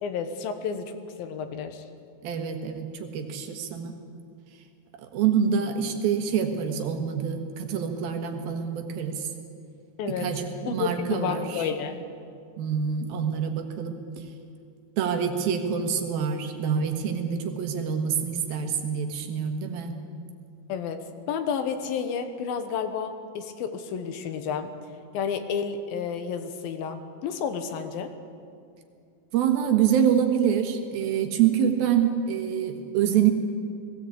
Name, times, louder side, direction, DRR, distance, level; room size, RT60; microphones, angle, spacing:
voice 1, 0.0-1.8 10.0-10.3 10.7-11.9 20.7-24.7 25.1-28.1, left 6 dB, 80° left, 8 dB, 2.9 m, -31 dB
voice 2, 2.2-3.9 5.0-9.3 10.1-11.6 12.6-14.0 15.0-19.9 29.3-33.3, right 8 dB, 75° right, 5 dB, 3.2 m, -26 dB
19.5 x 16.5 x 8.5 m, 2.4 s
omnidirectional pair, 4.3 m